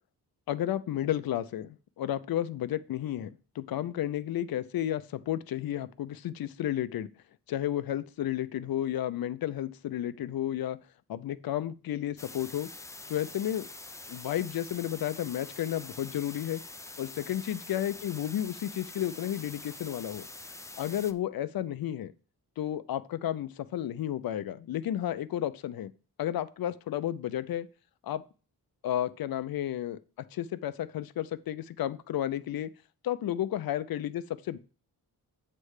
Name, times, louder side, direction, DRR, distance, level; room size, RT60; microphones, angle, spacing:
voice 1, 0.5-3.3 3.5-7.1 7.5-10.8 11.1-12.7 13.1-13.7 14.1-16.6 17.0-20.3 20.8-22.1 22.6-25.9 26.2-27.7 28.0-28.2 28.8-32.7 33.0-34.6, left 11 dB, 65° left, 13 dB, 0.5 m, -32 dB
sound 1, 12.2-21.1, left 2 dB, 10° left, 0.3 m, -45 dB
8.4 x 3.3 x 6.4 m, 0.36 s
wide cardioid pair, 135°, 39 cm